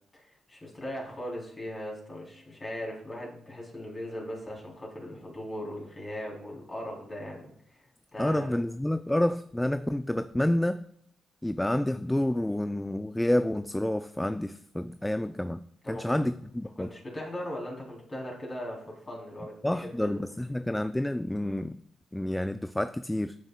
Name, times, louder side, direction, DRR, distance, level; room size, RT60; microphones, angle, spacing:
voice 1, 0.1-8.6 15.8-16.2 16.8-20.2, left 1 dB, 30° left, -2 dB, 3.3 m, -39 dB
voice 2, 8.2-10.8 11.4-15.6 15.9-16.9 19.6-21.8 22.1-23.4, left 1 dB, 10° left, 12 dB, 0.3 m, -29 dB
12.0 x 5.4 x 2.2 m, 0.69 s
hypercardioid pair, 40°, 0 cm